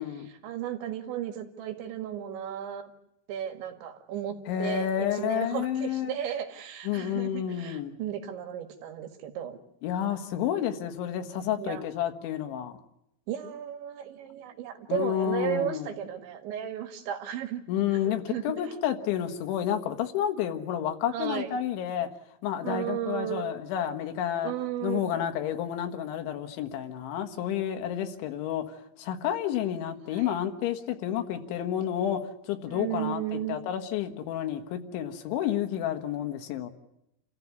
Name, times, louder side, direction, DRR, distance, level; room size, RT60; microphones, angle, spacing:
voice 1, 0.4-2.9 3.3-9.6 11.6-11.8 13.3-17.6 17.9-18.8 21.1-21.5 22.6-23.5 24.4-25.1 30.1-30.3 32.7-33.6, right 10 dB, 80° right, 6 dB, 4.2 m, -34 dB
voice 2, 4.5-6.1 6.9-8.0 9.8-12.8 14.9-15.9 17.7-22.1 22.4-24.5 24.8-36.7, left 10 dB, 85° left, 7 dB, 4.0 m, -30 dB
29.0 x 15.0 x 9.6 m, 0.84 s
omnidirectional pair, 5.3 m